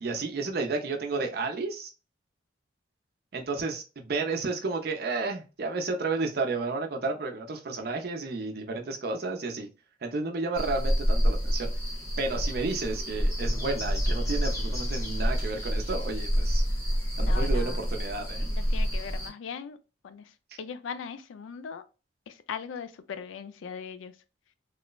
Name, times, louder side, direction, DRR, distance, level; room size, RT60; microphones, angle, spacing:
voice 1, 0.0-1.9 3.3-9.7 10.0-11.7 12.2-16.6 17.2-18.5, right 3 dB, 55° right, 0.5 m, -32 dB
sound 1, 10.5-19.3, equal, 15° left, 0.6 m, -28 dB
voice 2, 17.2-17.8 18.5-19.8 20.0-21.8 22.3-24.2, left 6 dB, 85° left, 0.3 m, -39 dB
3.0 x 2.0 x 2.2 m
head